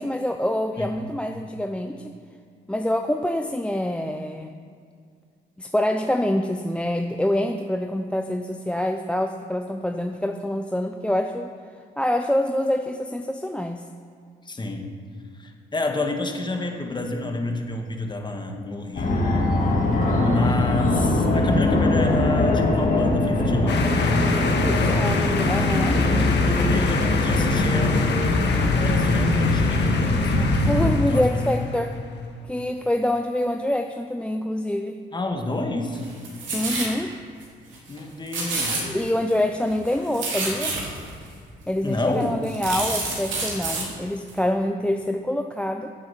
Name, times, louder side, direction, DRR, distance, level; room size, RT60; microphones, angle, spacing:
voice 1, 0.0-2.1 2.7-4.6 5.6-11.5 12.0-13.9 24.6-26.0 30.6-31.9 32.5-35.0 36.5-37.1 38.8-40.8 41.7-45.9, left 1 dB, 5° left, 6 dB, 0.5 m, -26 dB
voice 2, 14.4-14.9 15.4-19.3 20.2-24.2 26.5-30.5 30.7-32.1 35.1-36.1 37.9-38.8 41.8-42.4, left 2 dB, 20° left, 3 dB, 1.5 m, -29 dB
Fixed-wing aircraft airplane, 19.0-30.9, left 2 dB, 40° left, 1.8 m, -21 dB
sound 1, 23.7-32.0, left 4 dB, 60° left, 1.5 m, -30 dB
sound 2, 35.9-36.9 37.4-37.5 37.7-38.0 38.3-39.3 39.7-41.1 41.8-41.9 42.2-43.8 44.3-44.4, right 3 dB, 70° right, 3.4 m, -28 dB
9.6 x 7.7 x 7.3 m, 2.2 s
cardioid pair, 90°, 20 cm